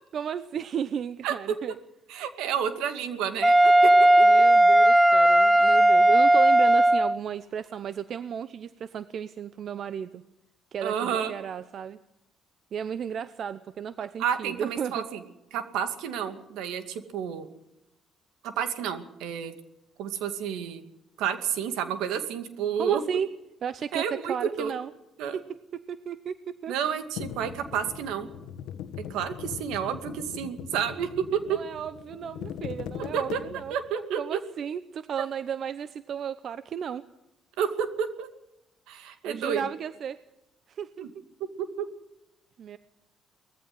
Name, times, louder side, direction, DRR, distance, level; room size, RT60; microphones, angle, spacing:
voice 1, 0.1-1.8 4.2-10.2 10.7-12.0 12.7-15.1 22.8-23.3 23.6-24.9 25.3-25.4 25.7-26.7 31.5-33.8 34.2-37.0 39.3-40.2 40.7-41.1 42.6-42.8, right 8 dB, 60° right, 14 dB, 0.8 m, -34 dB
voice 2, 2.1-3.7 10.8-11.4 14.2-15.2 15.5-17.5 18.4-19.5 20.0-20.8 21.2-23.0 23.9-24.7 25.2-25.4 26.7-28.3 29.1-31.6 33.0-33.4 33.7-34.4 37.6-38.3 38.9-39.7 41.0-41.1 41.6-41.9, right 8 dB, 85° right, 9 dB, 2.3 m, -30 dB
Wind instrument woodwind instrument, 3.4-7.2, right 1 dB, 10° right, 0.9 m, -17 dB
sound 1, 27.2-33.9, left 9 dB, 85° left, 1.3 m, -40 dB
20.0 x 15.0 x 9.6 m, 0.90 s
supercardioid pair, 75°, 0 cm